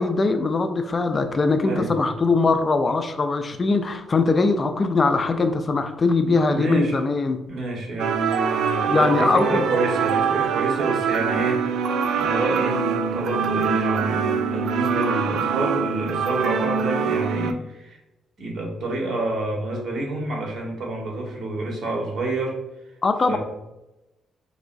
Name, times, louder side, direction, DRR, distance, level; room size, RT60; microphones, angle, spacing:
voice 1, 0.0-7.4 8.9-9.7 23.0-23.4, left 3 dB, 35° left, 7 dB, 0.3 m, -21 dB
voice 2, 6.2-7.0 7.5-11.9 12.2-18.0 18.4-22.6 23.3-23.4, right 2 dB, 55° right, -1 dB, 1.3 m, -28 dB
sound 1, 8.0-17.5, right 6 dB, 75° right, 0.3 m, -24 dB
4.5 x 2.9 x 2.6 m, 0.95 s
cardioid pair, 90°, 0 cm